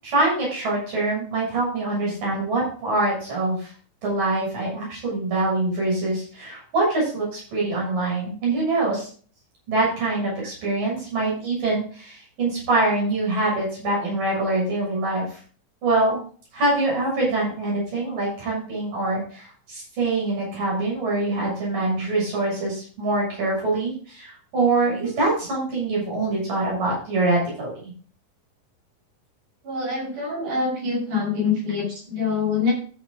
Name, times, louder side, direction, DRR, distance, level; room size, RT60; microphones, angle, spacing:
voice 1, 0.0-3.7 4.0-9.1 9.7-15.2 15.8-16.2 16.5-27.9, right 2 dB, 85° right, -5 dB, 8.6 m, -24 dB
voice 2, 29.6-32.7, left 4 dB, 65° right, -3 dB, 8.3 m, -25 dB
15.5 x 7.2 x 3.8 m, 0.42 s
omnidirectional pair, 3.8 m